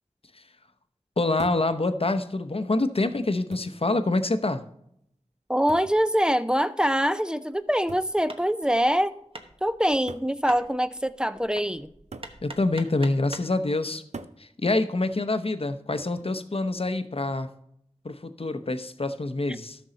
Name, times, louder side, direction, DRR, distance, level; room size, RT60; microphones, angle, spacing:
voice 1, 1.2-4.6 12.4-14.0 14.4-17.5 18.0-19.8, left 2 dB, 55° left, 10 dB, 0.7 m, -26 dB
sound 1, 1.4-1.8 2.8-2.9 3.5-3.9 5.7-6.0 7.9-8.2 9.2-9.3 10.1-10.4 12.1-12.4 14.1-14.4 16.0-16.4, right 4 dB, 70° right, 0.5 m, -42 dB
voice 2, 5.5-9.1 9.6-11.9, equal, 5° right, 12 dB, 0.5 m, -24 dB
Hammer, 7.5-13.6, right 2 dB, 50° right, 1.1 m, -45 dB
13.0 x 6.2 x 3.9 m, 0.74 s
wide cardioid pair, 50°, 12 cm